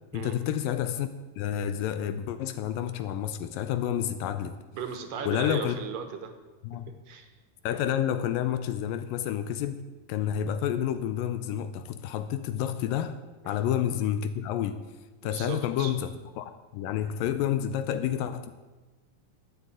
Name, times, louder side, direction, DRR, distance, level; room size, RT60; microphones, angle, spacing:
voice 1, 0.1-1.1 1.4-4.6 5.3-5.8 6.6-6.9 7.6-9.8 10.1-13.2 13.5-14.8 15.2-16.1 16.4-18.5, left 10 dB, 80° left, 11 dB, 2.2 m, -29 dB
voice 2, 4.7-6.3 7.1-7.3 15.2-15.9, right 6 dB, 70° right, 7 dB, 2.6 m, -36 dB
11.5 x 7.8 x 9.5 m, 1.3 s
omnidirectional pair, 4.3 m